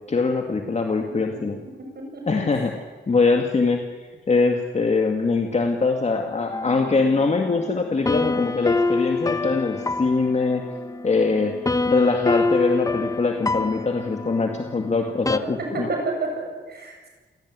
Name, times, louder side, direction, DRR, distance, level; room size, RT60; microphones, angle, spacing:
voice 1, 0.1-1.6 2.3-2.7 3.1-3.8 4.3-10.6 11.0-11.5 11.9-15.9, left 4 dB, 35° left, 3 dB, 2.0 m, -22 dB
voice 2, 1.4-1.7 1.9-2.6 15.7-17.1, right 2 dB, 55° right, 1 dB, 7.4 m, -30 dB
sound 1, 6.5-15.4, left 3 dB, 15° left, 0.8 m, -27 dB
28.0 x 17.5 x 9.6 m, 1.3 s
wide cardioid pair, 165°, 20 cm